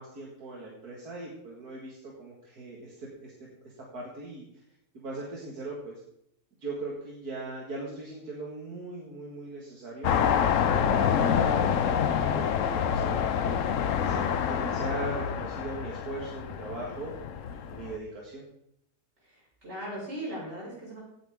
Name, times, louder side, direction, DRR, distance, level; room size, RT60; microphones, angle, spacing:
voice 1, 0.0-3.3 3.8-4.5 4.9-5.9 6.6-13.6 14.0-17.1 17.7-18.4, right 2 dB, 70° right, -3 dB, 2.5 m, -39 dB
sound 1, 10.0-18.0, left 8 dB, 60° left, 1.0 m, -27 dB
voice 2, 19.2-21.0, right 1 dB, 45° right, -5 dB, 6.1 m, -38 dB
16.5 x 9.2 x 3.7 m, 0.74 s
omnidirectional pair, 1.7 m